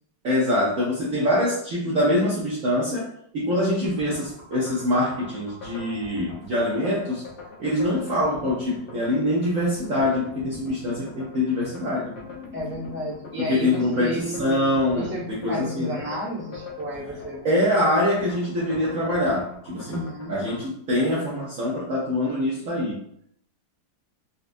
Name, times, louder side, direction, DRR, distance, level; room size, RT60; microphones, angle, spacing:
voice 1, 0.2-7.2 7.6-12.1 13.5-16.0 17.4-23.0, left 1 dB, 60° right, -6 dB, 0.9 m, -24 dB
sound 1, 3.8-20.7, left 4 dB, 75° left, 1.3 m, -42 dB
voice 2, 12.5-17.4 19.8-20.3, equal, 10° right, -8 dB, 0.9 m, -32 dB
4.1 x 2.3 x 2.5 m, 0.70 s
omnidirectional pair, 1.9 m